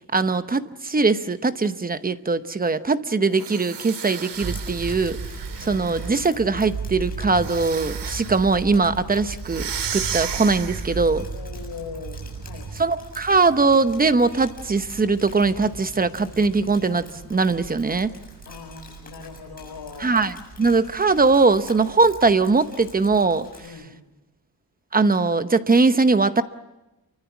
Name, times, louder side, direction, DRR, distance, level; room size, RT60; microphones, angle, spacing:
voice 1, 0.1-5.2 5.6-11.2 12.8-18.1 20.0-23.5 24.9-26.4, right 4 dB, 20° right, 11 dB, 0.9 m, -21 dB
sound 1, 3.3-6.3 7.4-8.5 9.4-11.1, right 8 dB, 90° right, 2.5 m, -34 dB
Drip, 4.3-23.7, left 3 dB, 20° left, 7.3 m, -48 dB
sound 2, 4.4-23.2, right 4 dB, 65° right, 4.1 m, -37 dB
voice 2, 11.3-12.7 18.5-20.1 21.0-21.1 23.6-23.9, left 5 dB, 75° left, 7 dB, 4.1 m, -40 dB
29.0 x 24.5 x 6.0 m, 1.0 s
wide cardioid pair, 155°, 40 cm